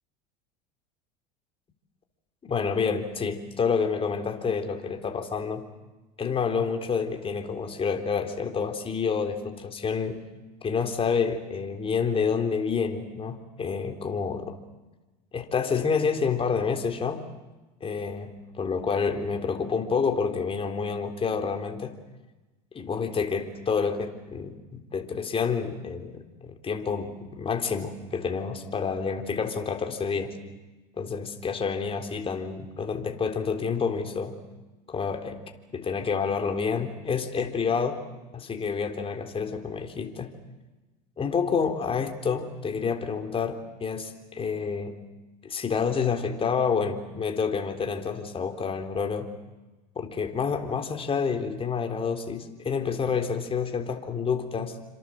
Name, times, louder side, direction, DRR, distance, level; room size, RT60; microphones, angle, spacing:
voice 1, 2.5-5.6 6.2-10.2 10.6-14.5 15.3-17.2 17.8-21.9 22.7-30.3 31.0-34.3 34.9-35.4 35.7-38.0 38.3-40.3 41.2-45.0 45.4-49.3 50.0-54.7, left 5 dB, 25° left, 6 dB, 3.6 m, -28 dB
28.5 x 26.0 x 7.7 m, 1.1 s
supercardioid pair, 105°, 21 cm